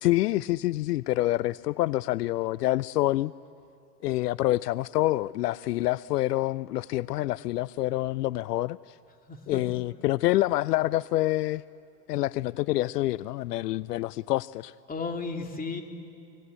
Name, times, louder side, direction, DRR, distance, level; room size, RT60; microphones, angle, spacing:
voice 1, 0.0-3.3 4.0-8.8 9.5-11.6 12.1-14.7, left 16 dB, 80° left, 20 dB, 0.5 m, -27 dB
voice 2, 9.3-9.6 14.9-15.8, left 4 dB, 20° left, 3 dB, 2.8 m, -34 dB
25.0 x 20.5 x 8.3 m, 2.5 s
hypercardioid pair, 95°, 48 cm